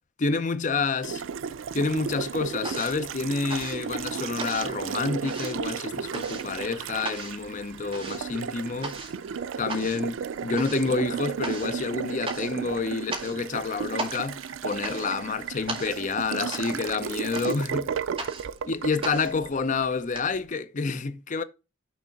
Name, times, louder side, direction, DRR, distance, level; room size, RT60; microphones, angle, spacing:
voice 1, 0.2-1.2 1.7-9.0 9.6-17.8 18.7-21.4, left 4 dB, 40° left, 0.6 m, -28 dB
sound 1, 0.8-1.6 1.9-20.2, right 3 dB, 30° right, 1.9 m, -39 dB
Water tap faucet, 1.0-20.2, right 7 dB, 90° right, 0.4 m, -34 dB
6.4 x 3.4 x 5.7 m
head